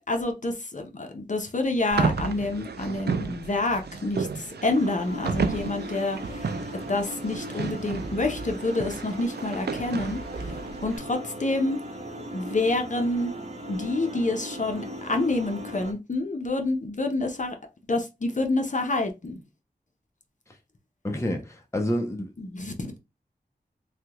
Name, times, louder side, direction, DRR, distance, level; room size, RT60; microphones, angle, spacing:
voice 1, 0.1-6.5 6.9-10.2 10.8-11.8 12.3-13.3 13.7-17.5 17.9-19.4 22.4-23.0, left 2 dB, 50° left, 0.8 m, -28 dB
sound 1, 1.9-11.0, right 5 dB, 75° right, 0.4 m, -32 dB
sound 2, 4.6-15.9, equal, 40° right, 1.0 m, -38 dB
voice 2, 21.0-22.3, equal, 15° left, 0.7 m, -28 dB
3.3 x 2.3 x 2.9 m
wide cardioid pair, 65°, 17 cm